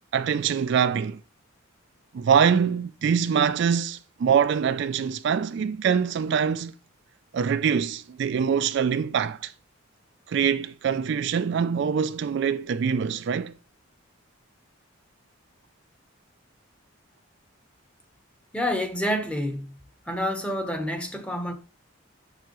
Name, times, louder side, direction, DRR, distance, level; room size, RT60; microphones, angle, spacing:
voice 1, 0.1-1.2 2.1-6.7 7.3-9.5 10.3-13.5, right 7 dB, 55° right, 0.3 m, -24 dB
voice 2, 18.5-19.7 20.1-21.5, equal, 5° left, 0.9 m, -28 dB
6.8 x 6.7 x 3.0 m
head